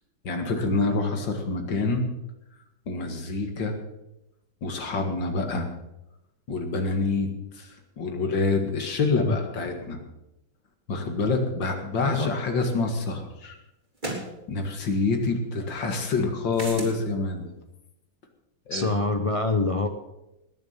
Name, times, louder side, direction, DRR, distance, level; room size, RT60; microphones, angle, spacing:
voice 1, 0.2-2.0 2.9-3.7 4.6-5.7 6.5-10.0 10.9-13.6 14.5-17.5 18.7-18.9, left 3 dB, 70° left, 4 dB, 2.7 m, -27 dB
voice 2, 12.0-12.3 18.7-19.9, left 2 dB, 45° left, 7 dB, 0.4 m, -25 dB
sound 1, 12.6-12.7 14.0-14.3 16.5-17.0, right 2 dB, 25° right, 3.2 m, -33 dB
19.5 x 7.1 x 7.3 m, 0.93 s
omnidirectional pair, 2.1 m